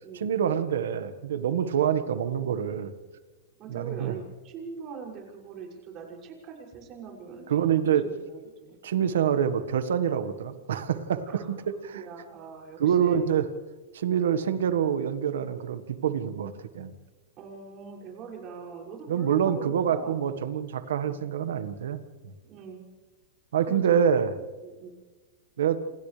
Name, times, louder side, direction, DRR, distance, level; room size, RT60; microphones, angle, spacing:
voice 1, 0.1-2.9 3.7-4.1 7.5-8.0 8.8-12.0 12.8-13.5 13.9-16.9 19.1-22.0 23.5-24.3 25.6-25.8, right 8 dB, 90° right, 10 dB, 1.5 m, -26 dB
voice 2, 3.6-7.5 8.0-9.1 11.3-11.5 11.9-13.2 14.3-14.4 17.4-20.5 22.5-22.8 23.6-24.1 24.6-25.0, right 5 dB, 35° right, -1 dB, 6.7 m, -43 dB
29.0 x 27.5 x 3.4 m, 1.3 s
supercardioid pair, 145°, 0 cm